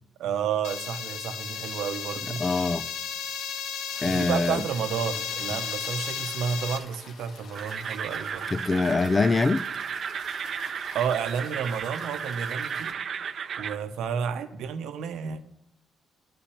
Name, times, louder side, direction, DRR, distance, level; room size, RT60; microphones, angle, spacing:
voice 1, 0.2-2.4 4.0-8.5 10.9-12.9 13.6-15.4, right 7 dB, 85° right, 0.8 m, -31 dB
sound 1, 0.6-6.8, left 7 dB, 85° left, 0.8 m, -34 dB
voice 2, 2.4-2.8 4.0-4.6 8.5-9.7, left 3 dB, 25° left, 0.5 m, -24 dB
sound 2, 3.9-12.9, left 4 dB, 70° left, 1.4 m, -49 dB
sound 3, 7.5-13.8, right 7 dB, 55° right, 0.6 m, -34 dB
11.0 x 5.7 x 8.4 m
cardioid pair, 90°, 0 cm